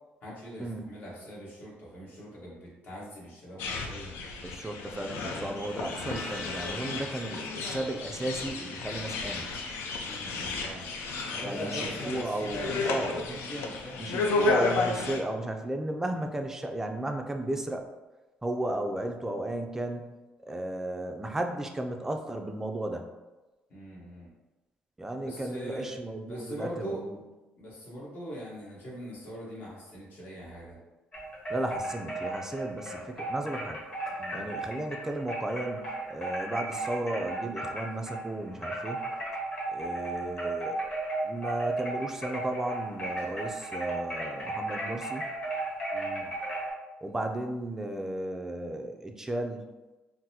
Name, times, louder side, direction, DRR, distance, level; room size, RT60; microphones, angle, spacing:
voice 1, 0.2-4.1 5.3-5.6 10.0-14.0 23.7-24.3 25.2-25.9 26.3-27.0 27.6-30.8 34.2-34.5 45.9-46.3, equal, 55° left, -6 dB, 1.3 m, -42 dB
sound 1, 3.6-15.2, left 4 dB, 85° left, 0.4 m, -33 dB
voice 2, 4.4-9.5 11.4-13.4 14.0-17.8 18.4-20.2 20.5-23.1 25.0-27.2 31.5-33.8 34.3-39.0 39.7-40.8 41.2-45.2 47.0-49.7, right 1 dB, 10° right, 4 dB, 0.3 m, -34 dB
sound 2, 5.6-8.8, left 1 dB, 20° left, 1.0 m, -46 dB
sound 3, 31.1-38.3 38.6-46.7, right 2 dB, 35° left, 1.4 m, -35 dB
3.8 x 2.1 x 2.8 m, 1.1 s
cardioid pair, 110°, 4 cm